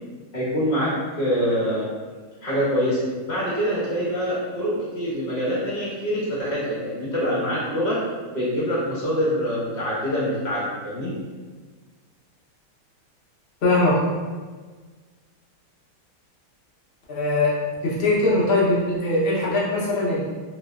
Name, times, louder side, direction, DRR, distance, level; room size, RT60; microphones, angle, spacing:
voice 1, 0.3-0.9 1.2-1.9 2.4-8.0 8.3-11.1, equal, 35° left, -9 dB, 0.7 m, -25 dB
voice 2, 13.6-14.0 17.1-17.6 17.8-20.2, left 2 dB, 75° left, -7 dB, 0.5 m, -21 dB
3.2 x 3.0 x 2.3 m, 1.4 s
omnidirectional pair, 2.2 m